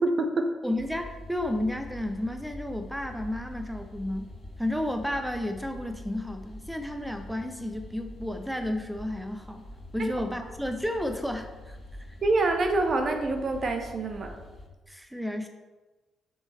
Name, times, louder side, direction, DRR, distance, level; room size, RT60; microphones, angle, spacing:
voice 1, 0.0-0.5 10.0-10.1 12.2-14.4, right 2 dB, 50° right, 5 dB, 0.9 m, -26 dB
voice 2, 0.6-4.3 4.6-9.7 9.9-11.8 12.1-12.2 14.9-15.5, left 1 dB, 5° right, 6 dB, 0.8 m, -32 dB
sound 1, 0.8-14.7, left 1 dB, 45° left, 1.6 m, -45 dB
7.2 x 6.3 x 3.4 m, 1.2 s
hypercardioid pair, 45°, 0 cm